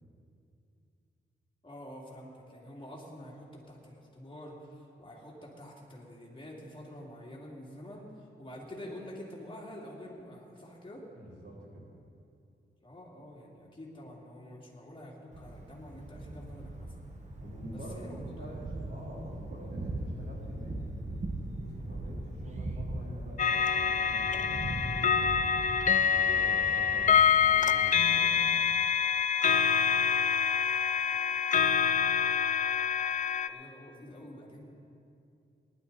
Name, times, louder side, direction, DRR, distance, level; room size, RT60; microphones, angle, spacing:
voice 1, 1.6-11.0 12.8-16.9 17.7-18.6 33.5-34.7, left 1 dB, 25° left, -3 dB, 2.7 m, -47 dB
voice 2, 11.1-11.8 17.4-20.8 21.5-25.4 26.0-28.7, right 1 dB, 60° right, -5 dB, 3.8 m, -46 dB
Thunder, 15.3-28.7, right 2 dB, 40° right, 1.4 m, -40 dB
sound 1, 23.4-33.5, left 7 dB, 45° left, 0.4 m, -26 dB
19.0 x 11.0 x 4.1 m, 2.5 s
wide cardioid pair, 100°, 19 cm